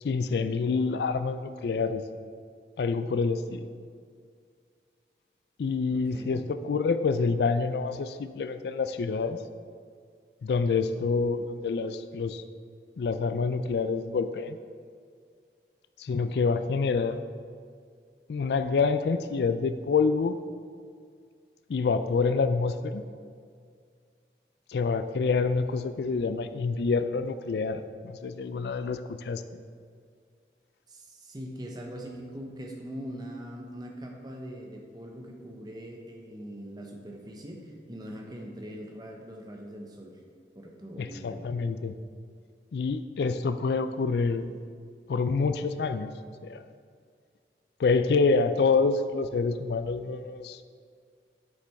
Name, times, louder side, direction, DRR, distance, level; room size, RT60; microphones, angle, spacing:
voice 1, 0.0-2.0 2.8-3.7 5.6-9.4 10.4-12.4 13.0-14.6 16.0-17.2 18.3-20.4 21.7-23.0 24.7-29.4 41.0-41.9 42.7-44.6 45.1-46.1 46.4-46.7 47.8-50.6, left 4 dB, 70° left, 11 dB, 0.3 m, -27 dB
voice 2, 5.9-6.4 30.9-40.2 40.5-41.4, equal, 25° right, 1 dB, 0.9 m, -42 dB
8.3 x 7.6 x 3.5 m, 2.1 s
head